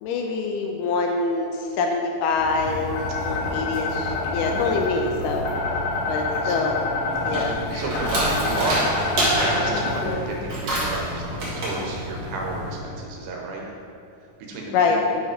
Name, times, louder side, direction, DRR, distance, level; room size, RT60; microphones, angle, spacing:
voice 1, 0.0-5.5 6.1-6.8 7.3-7.5 14.7-15.0, left 4 dB, 85° left, 2 dB, 1.9 m, -25 dB
sound 1, 2.3-10.1, left 2 dB, 60° left, 2.0 m, -27 dB
voice 2, 3.2-3.8 4.4-4.8 6.3-6.7 7.2-8.9 9.4-13.6 14.5-15.0, right 2 dB, 80° right, -1 dB, 2.8 m, -32 dB
sound 2, 7.1-12.8, right 1 dB, 45° right, 1.5 m, -28 dB
8.5 x 5.2 x 4.9 m, 2.6 s
omnidirectional pair, 4.4 m